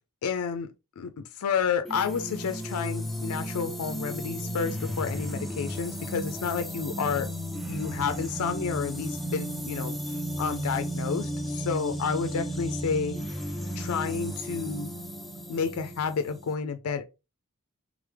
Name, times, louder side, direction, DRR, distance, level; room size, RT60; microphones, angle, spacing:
voice 1, 0.2-7.3 7.7-10.0 10.4-13.2 13.7-14.9 15.5-17.0, left 6 dB, 85° left, 0.4 m, -30 dB
sound 1, 1.8-16.5, equal, ahead, 0.5 m, -34 dB
3.6 x 3.3 x 3.4 m
head